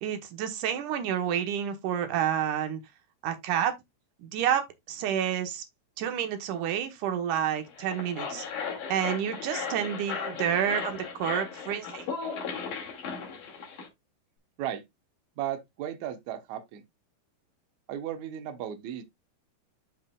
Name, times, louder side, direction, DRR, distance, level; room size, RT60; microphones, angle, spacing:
voice 1, 0.0-2.8 3.2-3.7 4.2-4.6 4.9-5.6 6.0-8.4 8.9-12.1, right 9 dB, 70° right, 2.0 m, -29 dB
sound 1, 7.7-13.9, left 6 dB, 50° left, 3.3 m, -36 dB
voice 2, 15.4-16.8 17.9-19.0, right 11 dB, 85° right, 1.6 m, -35 dB
12.0 x 4.5 x 2.3 m
omnidirectional pair, 4.9 m